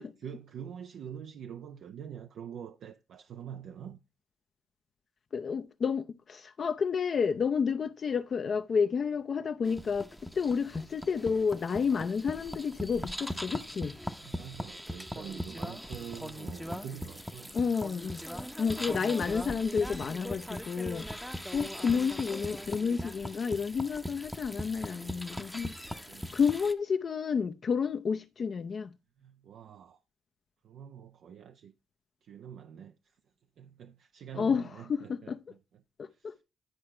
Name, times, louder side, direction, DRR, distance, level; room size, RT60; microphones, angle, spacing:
voice 1, 0.0-4.0 14.2-17.5 21.6-21.8 25.8-26.3 29.2-30.0 30.6-31.7 32.2-33.2 33.6-35.6 36.1-36.4, right 8 dB, 70° right, 0.6 m, -45 dB
voice 2, 5.3-14.0 17.5-18.2 18.6-21.3 21.5-26.0 26.3-28.9 34.3-35.4 36.0-36.3, left 6 dB, 45° left, 0.6 m, -30 dB
sound 1, 9.6-26.7, equal, ahead, 0.8 m, -40 dB
10.5 x 4.8 x 4.3 m
cardioid pair, 90°, 0 cm